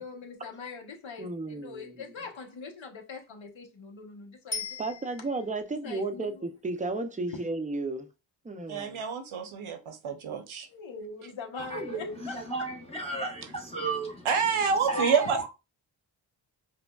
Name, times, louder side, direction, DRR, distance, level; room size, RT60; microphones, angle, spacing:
voice 1, 0.0-4.8 5.8-6.5 7.3-7.4 10.7-12.5, left 4 dB, 65° left, 1.0 m, -42 dB
voice 2, 1.2-2.0 4.8-8.1 8.4-9.0, right 2 dB, 15° right, 0.5 m, -33 dB
Bicycle bell, 4.5-5.6 14.7-14.8, left 4 dB, 30° left, 1.4 m, -38 dB
voice 3, 8.7-10.7 14.2-15.5, right 6 dB, 75° right, 0.8 m, -28 dB
voice 4, 11.6-14.3 14.9-15.5, right 2 dB, 10° left, 0.8 m, -33 dB
5.0 x 2.2 x 2.3 m
cardioid pair, 50°, 49 cm